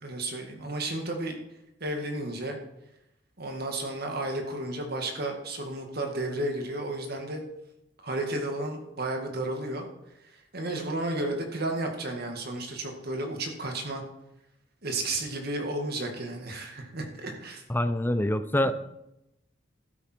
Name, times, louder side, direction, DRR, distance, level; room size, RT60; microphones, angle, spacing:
voice 1, 0.0-1.4 1.8-2.6 3.4-7.4 8.0-9.9 10.2-14.0 14.8-17.6 18.7-18.8, right 2 dB, 55° right, 3 dB, 2.0 m, -33 dB
voice 2, 17.7-18.7, left 1 dB, 10° left, 11 dB, 0.6 m, -25 dB
12.5 x 9.2 x 4.5 m, 0.87 s
head